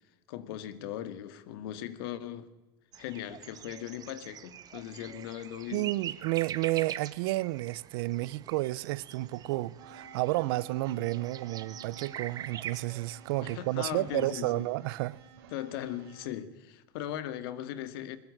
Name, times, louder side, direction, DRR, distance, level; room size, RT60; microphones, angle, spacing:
voice 1, 0.3-2.5 3.0-5.9 13.4-14.7 15.5-18.2, left 11 dB, 75° left, 2.2 m, -39 dB
sound 1, 2.9-14.3, right 10 dB, 30° right, 1.4 m, -44 dB
voice 2, 5.7-15.2, right 19 dB, 70° right, 0.8 m, -31 dB
sound 2, 9.8-16.3, right 5 dB, 90° right, 4.6 m, -52 dB
22.0 x 20.5 x 8.8 m
supercardioid pair, 145°, 13 cm